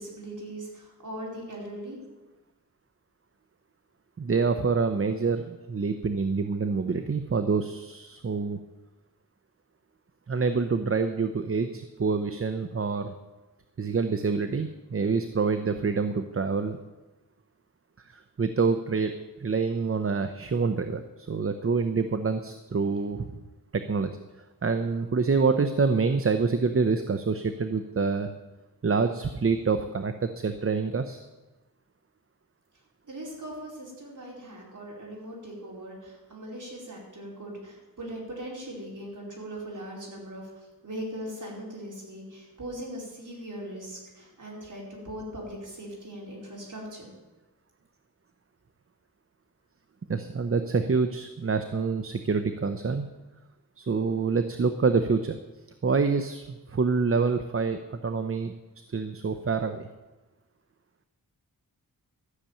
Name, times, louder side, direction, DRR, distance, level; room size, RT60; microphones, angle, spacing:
voice 1, 0.0-2.0 33.1-40.5 40.8-47.1, right 1 dB, 55° right, -3 dB, 4.6 m, -40 dB
voice 2, 4.2-8.6 10.3-13.1 13.8-16.8 18.1-19.1 19.4-23.4 23.7-24.1 24.6-28.3 28.8-31.2 50.1-53.1 53.8-55.4 55.8-58.5 58.9-59.9, right 4 dB, 40° right, 9 dB, 0.7 m, -26 dB
13.0 x 6.9 x 8.9 m, 1.1 s
wide cardioid pair, 95°, 36 cm